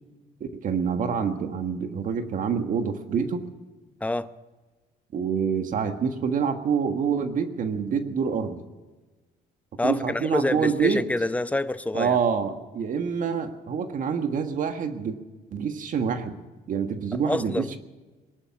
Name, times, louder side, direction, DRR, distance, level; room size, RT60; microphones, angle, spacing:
voice 1, 0.4-3.5 5.1-8.6 9.8-11.1 11.9-15.2 15.5-16.4 16.7-17.8, right 6 dB, 50° right, 7 dB, 1.5 m, -26 dB
voice 2, 9.8-12.2 17.3-17.8, left 2 dB, 10° left, 12 dB, 0.8 m, -27 dB
21.0 x 11.5 x 5.9 m, 1.3 s
cardioid pair, 110°, 17 cm